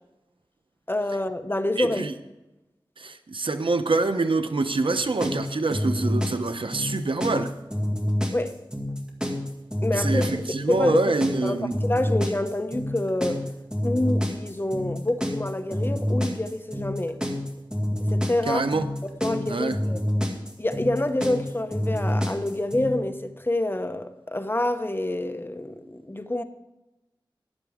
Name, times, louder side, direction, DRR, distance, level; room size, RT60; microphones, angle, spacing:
voice 1, 0.9-2.1 8.3-8.6 9.8-11.0 11.4-13.4 13.8-17.2 18.1-18.7 19.2-20.0 20.6-26.4, left 1 dB, 25° left, 0.9 m, -27 dB
voice 2, 1.8-2.1 3.0-7.5 10.0-11.7 18.5-18.9 19.5-19.8, right 3 dB, 75° right, 0.9 m, -25 dB
sound 1, 4.9-22.9, equal, 10° right, 2.2 m, -27 dB
14.0 x 11.0 x 3.6 m
wide cardioid pair, 50°, 9 cm